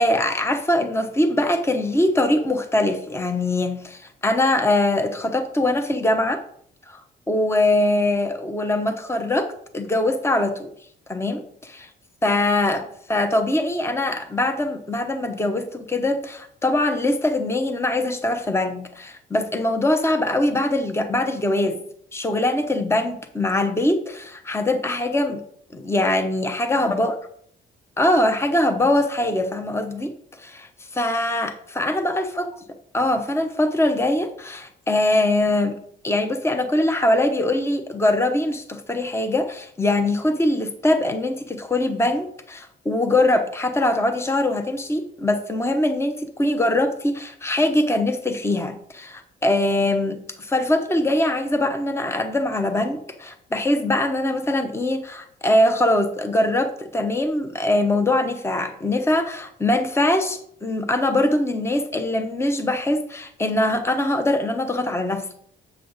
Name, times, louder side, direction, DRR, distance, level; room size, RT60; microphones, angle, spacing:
voice 1, 0.0-6.4 6.9-7.0 7.3-10.7 11.1-11.9 12.2-21.8 22.1-25.4 25.7-27.1 28.0-32.4 32.9-35.8 36.0-65.3, left 1 dB, 15° left, 7 dB, 0.9 m, -22 dB
7.8 x 5.5 x 4.0 m, 0.64 s
cardioid pair, 90°, 20 cm